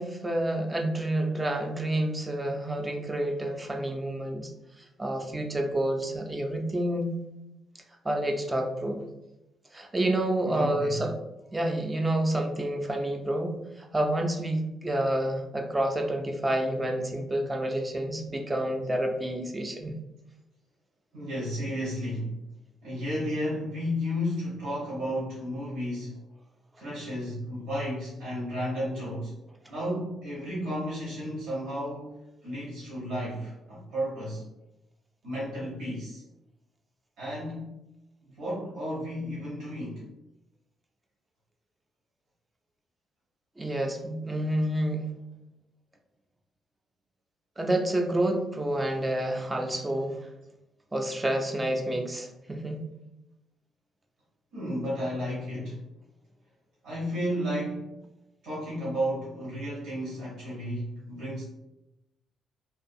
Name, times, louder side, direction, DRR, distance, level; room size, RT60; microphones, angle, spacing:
voice 1, 0.0-4.5 4.8-7.1 8.0-9.0 9.7-11.2 11.5-19.9 43.6-45.1 47.6-50.3 50.9-52.8, right 1 dB, 20° right, 3 dB, 0.4 m, -29 dB
voice 2, 10.4-11.0 21.1-22.5 22.8-26.2 26.8-29.4 29.7-32.2 32.4-34.5 35.2-36.2 37.2-37.8 38.4-40.1 54.5-55.9 56.8-57.9 58.4-61.4, equal, 80° right, -7 dB, 1.0 m, -33 dB
2.5 x 2.3 x 2.6 m, 0.93 s
cardioid pair, 90°, 0 cm